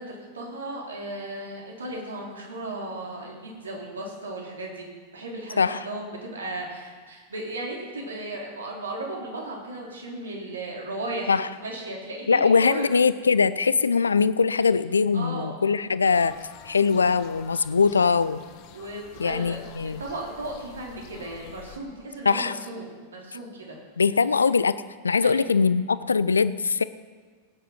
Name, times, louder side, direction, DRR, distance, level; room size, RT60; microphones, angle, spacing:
voice 1, 0.0-12.8 15.1-15.5 18.7-19.6 20.0-23.8 25.2-25.4, right 2 dB, 70° right, -1 dB, 3.7 m, -35 dB
voice 2, 12.3-16.3 16.6-18.4 19.2-20.0 22.2-22.6 24.0-24.8 25.0-26.8, left 5 dB, 75° left, 15 dB, 0.5 m, -21 dB
sound 1, 16.1-21.8, left 9 dB, 40° left, 1.2 m, -48 dB
18.0 x 9.4 x 5.7 m, 1.5 s
figure-of-eight pair, 90°, 0 cm